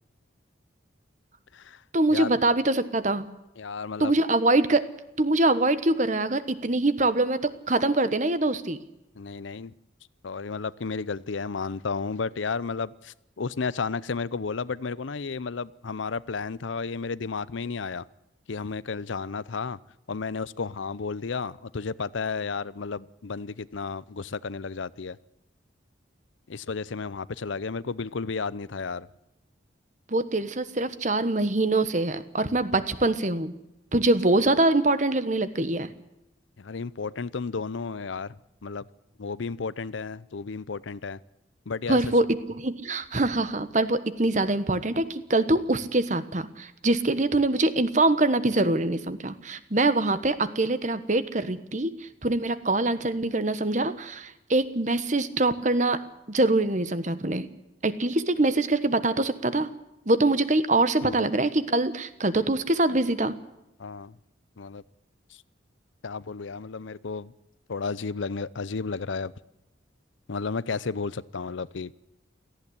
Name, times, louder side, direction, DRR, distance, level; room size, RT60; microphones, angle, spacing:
voice 1, 1.9-3.2 4.0-4.8 5.2-8.8 30.1-33.6 33.9-35.9 41.9-56.0 56.3-57.5 57.8-59.7 60.1-63.3, right 2 dB, 40° right, 1.2 m, -24 dB
voice 2, 3.6-4.1 9.2-9.7 10.2-18.1 18.5-19.8 20.1-25.2 26.5-29.1 36.6-38.9 39.2-41.2 41.7-42.0 61.0-61.2 63.8-64.2 64.6-64.8 66.0-67.3 67.7-69.3 70.3-71.9, left 4 dB, 80° left, 0.6 m, -32 dB
17.5 x 15.0 x 9.9 m
head